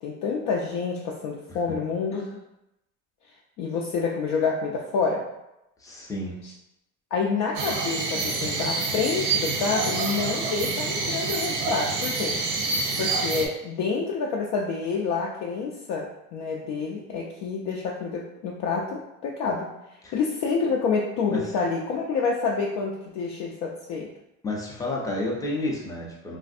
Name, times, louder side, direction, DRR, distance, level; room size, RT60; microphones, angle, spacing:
voice 1, 0.0-2.4 3.6-5.3 6.4-6.5 7.1-12.4 13.0-24.1, left 5 dB, 70° left, -2 dB, 0.5 m, -28 dB
voice 2, 5.8-6.3 20.0-20.1 21.3-21.4 24.4-26.4, left 2 dB, 10° left, -2 dB, 0.4 m, -30 dB
sound 1, 7.5-13.5, right 4 dB, 80° right, 0.6 m, -27 dB
3.3 x 2.5 x 2.5 m, 0.89 s
cardioid pair, 160°, 33 cm